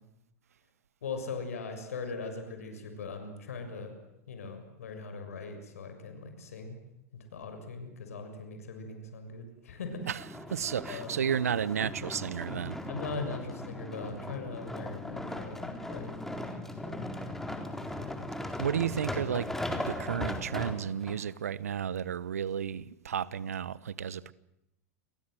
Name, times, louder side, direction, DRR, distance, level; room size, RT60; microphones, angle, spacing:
voice 1, 1.0-3.9 4.3-6.8 7.1-10.1 10.9-11.4 12.9-16.1 16.8-17.1 17.9-18.3, left 4 dB, 70° left, 6.8 m, -40 dB
sound 1, 10.2-21.2 21.8-21.9, left 1 dB, 5° left, 4.0 m, -38 dB
voice 2, 10.5-12.8 18.6-19.5 19.9-24.3, right 8 dB, 75° right, 1.1 m, -32 dB
30.0 x 23.5 x 7.9 m
figure-of-eight pair, 95°, 8 cm